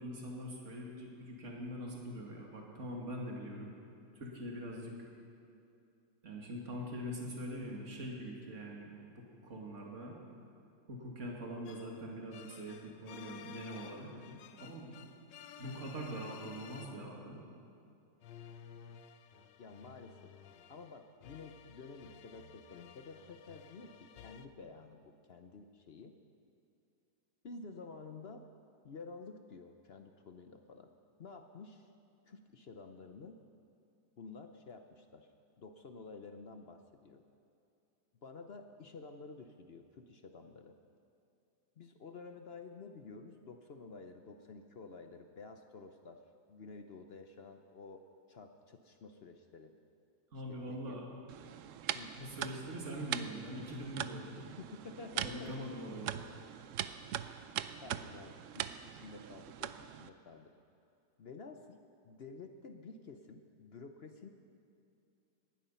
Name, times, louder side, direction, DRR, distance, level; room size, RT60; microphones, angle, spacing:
voice 1, 0.0-3.7 4.2-4.9 6.2-10.2 10.9-14.1 14.6-14.9 15.6-17.4 50.3-51.0 52.2-54.5 55.2-56.3, equal, 40° right, -1 dB, 2.5 m, -43 dB
sound 1, 11.7-17.3 18.2-24.5, left 8 dB, 80° left, 1.3 m, -54 dB
voice 2, 19.6-20.3 20.7-26.1 27.4-28.5 28.8-30.9 31.2-31.9 32.3-33.3 34.2-35.3 35.6-37.2 38.2-40.7 41.8-46.2 46.5-49.7 50.5-51.0 51.9-52.1 54.3-55.7 57.8-60.5 61.2-61.8 62.0-64.3, left 4 dB, 55° left, 6 dB, 0.6 m, -51 dB
sound 2, 51.3-60.1, right 10 dB, 85° right, 0.6 m, -42 dB
19.0 x 12.5 x 5.6 m, 2.6 s
omnidirectional pair, 1.9 m